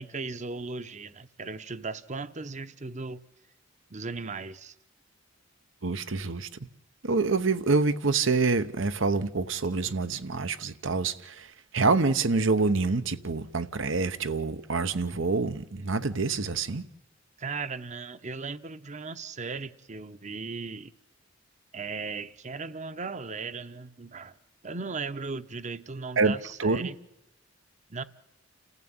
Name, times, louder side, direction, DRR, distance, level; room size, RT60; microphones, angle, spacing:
voice 1, 0.0-3.2 3.9-4.7 17.4-20.9 21.7-24.4 24.6-27.0 27.9-28.0, right 4 dB, 40° right, 0.9 m, -37 dB
voice 2, 5.8-6.5 7.0-16.8 26.2-26.3 26.6-26.9, right 3 dB, 80° right, 1.1 m, -26 dB
29.5 x 15.0 x 8.8 m
head